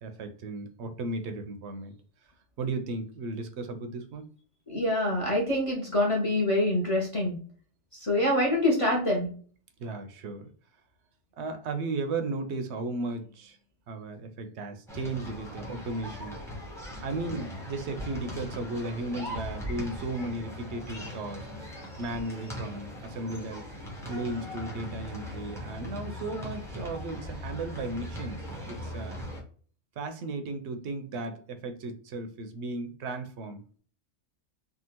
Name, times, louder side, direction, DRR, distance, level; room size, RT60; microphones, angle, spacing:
voice 1, 0.0-1.9 2.6-4.3 9.8-10.5 11.4-13.6 13.9-16.4 17.0-21.5 22.0-23.6 24.1-28.4 28.7-29.2 30.0-33.8, right 2 dB, 75° right, 0.9 m, -35 dB
voice 2, 4.7-7.4 7.9-9.3, left 1 dB, 35° left, 0.8 m, -25 dB
sound 1, 14.9-29.4, left 1 dB, 5° left, 0.9 m, -39 dB
3.6 x 2.3 x 2.8 m
omnidirectional pair, 1.2 m